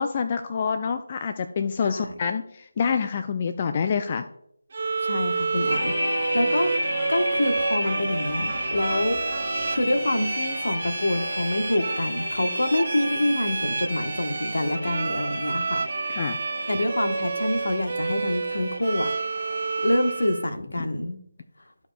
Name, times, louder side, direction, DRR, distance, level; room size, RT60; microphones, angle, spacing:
voice 1, 0.0-4.2 16.1-16.4 20.8-20.9, left 6 dB, 30° left, 8 dB, 0.4 m, -27 dB
Bowed string instrument, 4.7-20.5, right 4 dB, 45° right, 0.3 m, -30 dB
voice 2, 5.0-9.5 9.7-15.8 16.7-19.1 19.3-19.5 19.8-21.2, left 1 dB, 70° left, 6 dB, 1.1 m, -26 dB
sound 1, 5.7-20.2, left 1 dB, 90° left, 2.5 m, -32 dB
sound 2, 6.6-11.6, right 3 dB, 10° right, 0.8 m, -45 dB
13.0 x 4.9 x 2.2 m, 0.73 s
figure-of-eight pair, 160°, 0 cm